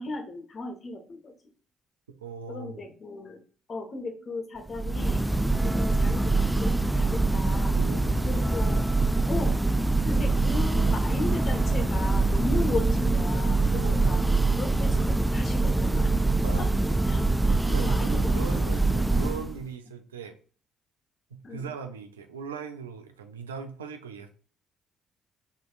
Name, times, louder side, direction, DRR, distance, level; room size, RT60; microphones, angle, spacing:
voice 1, 0.0-1.3 2.5-3.4 3.7-5.2 5.6-7.8 8.3-9.0 9.3-9.6 10.0-14.2 14.6-16.1 16.6-16.7 17.1-18.7 21.4-21.7, left 2 dB, 45° left, 1.2 m, -36 dB
voice 2, 2.2-2.8 7.7-8.7 13.7-14.1 16.4-16.7 17.6-20.4 21.3-24.3, right 6 dB, 85° right, 0.4 m, -39 dB
Church bell, 4.7-19.6, right 2 dB, 5° right, 0.3 m, -24 dB
5.1 x 3.1 x 2.4 m
figure-of-eight pair, 45°, 0 cm